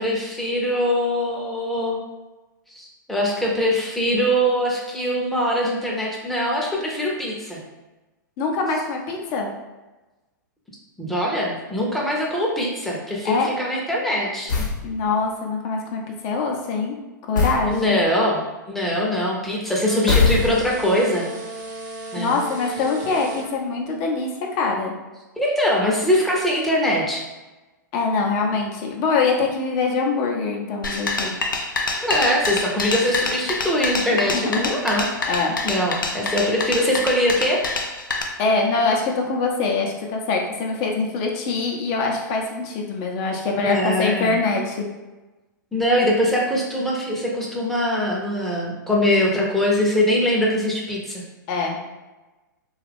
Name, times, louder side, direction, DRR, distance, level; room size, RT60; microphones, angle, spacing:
voice 1, 0.0-2.0 2.8-7.6 11.0-14.5 17.7-18.4 18.7-21.3 22.1-22.4 25.4-27.2 32.0-35.1 35.6-37.6 43.6-44.4 45.7-51.2, equal, ahead, -3 dB, 0.6 m, -22 dB
voice 2, 8.4-9.5 13.2-13.5 14.8-16.9 17.3-18.0 22.2-24.3 24.6-24.9 27.9-31.3 34.3-34.7 35.3-35.6 38.4-44.9 51.5-51.8, left 4 dB, 40° left, 1 dB, 0.6 m, -23 dB
sound 1, 14.5-14.8 17.3-17.7 20.1-20.9, left 4 dB, 70° left, 0.9 m, -20 dB
sound 2, 19.8-23.5, right 2 dB, 40° right, 0.6 m, -35 dB
sound 3, 30.8-38.2, left 3 dB, 85° left, 0.5 m, -26 dB
2.8 x 2.4 x 3.4 m, 1.1 s
hypercardioid pair, 115°, 11 cm